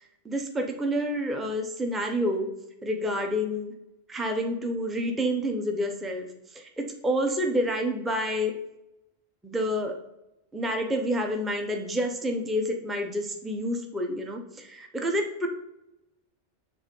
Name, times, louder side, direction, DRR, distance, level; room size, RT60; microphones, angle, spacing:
voice 1, 0.2-2.5 2.8-3.7 4.1-6.2 6.5-8.5 9.4-9.9 10.5-15.5, equal, ahead, 3 dB, 0.6 m, -28 dB
7.1 x 3.5 x 5.2 m, 0.90 s
omnidirectional pair, 1.2 m